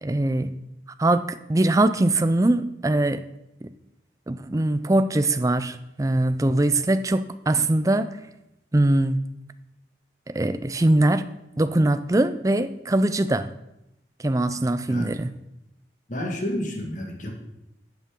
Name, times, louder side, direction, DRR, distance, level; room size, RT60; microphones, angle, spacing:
voice 1, 0.0-0.5 1.0-3.2 4.3-8.1 8.7-9.2 10.3-11.3 11.6-13.5 14.2-15.3, right 1 dB, 20° right, 11 dB, 0.4 m, -22 dB
voice 2, 16.1-17.3, left 1 dB, 45° left, 2 dB, 1.8 m, -30 dB
11.5 x 8.2 x 3.7 m, 0.86 s
head